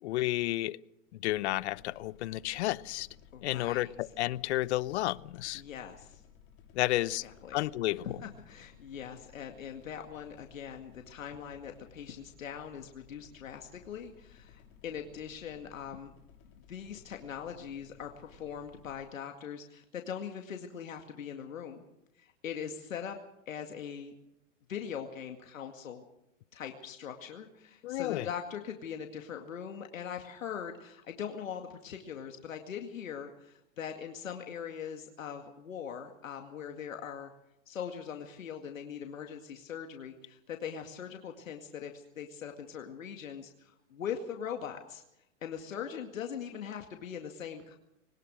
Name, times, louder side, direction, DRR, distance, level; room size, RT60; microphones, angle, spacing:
voice 1, 0.0-0.8 1.1-3.1 3.4-5.6 6.7-7.2 7.5-8.1 27.8-28.3, left 16 dB, 60° left, 0.8 m, -31 dB
sound 1, 1.2-19.1, left 7 dB, 35° left, 3.2 m, -58 dB
voice 2, 3.3-3.9 5.5-6.2 7.2-7.6 8.0-16.1 16.7-21.8 22.2-23.2 23.5-24.1 24.7-26.0 26.5-37.3 37.7-45.0 45.4-47.8, left 8 dB, 90° left, 2.2 m, -41 dB
22.0 x 19.0 x 6.4 m
hypercardioid pair, 135°, 38 cm